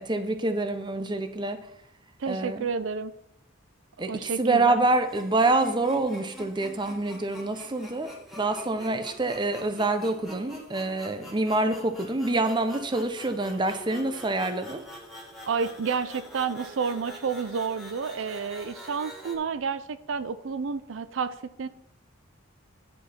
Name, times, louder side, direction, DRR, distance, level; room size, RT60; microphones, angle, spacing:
voice 1, 0.0-1.6 2.3-2.7 4.0-14.8, right 2 dB, 25° right, 8 dB, 0.7 m, -26 dB
voice 2, 2.2-3.1 4.1-4.8 15.5-21.7, right 5 dB, 75° right, 13 dB, 0.5 m, -30 dB
sound 1, 5.0-19.4, equal, ahead, 2.0 m, -45 dB
10.5 x 5.4 x 5.8 m, 0.77 s
head